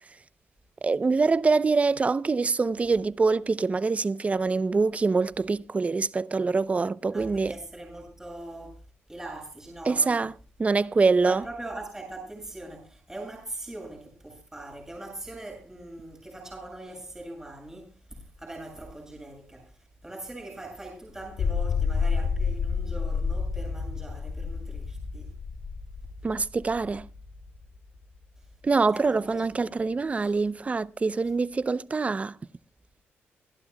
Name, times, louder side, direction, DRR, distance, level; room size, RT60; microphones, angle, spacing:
voice 1, 0.8-7.5 9.9-10.3 10.6-11.4 26.2-27.1 28.6-32.3, right 4 dB, 30° right, 0.7 m, -24 dB
voice 2, 7.1-8.8 9.1-10.3 11.2-17.9 18.4-19.7 20.0-25.3 28.9-29.8 30.1-30.4, right 2 dB, 10° right, 7.9 m, -41 dB
sound 1, 21.2-27.7, left 5 dB, 75° left, 3.8 m, -30 dB
27.5 x 11.5 x 2.3 m
cardioid pair, 80°, 4 cm